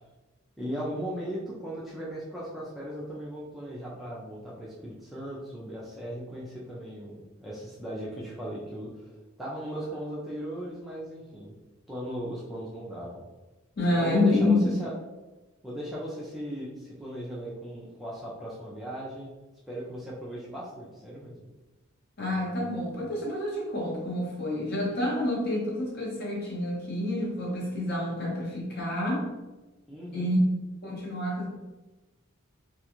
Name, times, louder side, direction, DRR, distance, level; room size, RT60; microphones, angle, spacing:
voice 1, 0.6-9.1 9.4-11.5 11.9-13.2 14.0-14.9 15.6-19.3 19.7-21.5 29.9-30.3, equal, ahead, -7 dB, 0.3 m, -37 dB
voice 2, 13.8-14.8 22.2-29.3 30.1-30.4 30.8-31.5, left 1 dB, 50° left, -4 dB, 0.9 m, -28 dB
2.3 x 2.3 x 2.9 m, 1.1 s
head